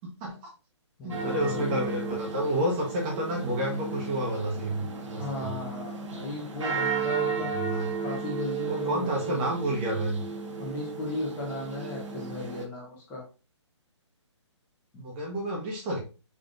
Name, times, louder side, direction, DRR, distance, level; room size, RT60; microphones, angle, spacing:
voice 1, 0.2-0.5 1.0-5.5 7.6-7.9 8.7-10.2 15.0-16.0, right 1 dB, 20° right, 0 dB, 1.2 m, -30 dB
voice 2, 1.0-2.0 5.2-9.5 10.6-13.2 14.9-15.1, left 2 dB, 15° left, -2 dB, 1.2 m, -36 dB
sound 1, 1.1-12.6, right 5 dB, 85° right, 1.5 m, -34 dB
6.0 x 3.4 x 2.6 m, 0.33 s
hypercardioid pair, 160°, 15 cm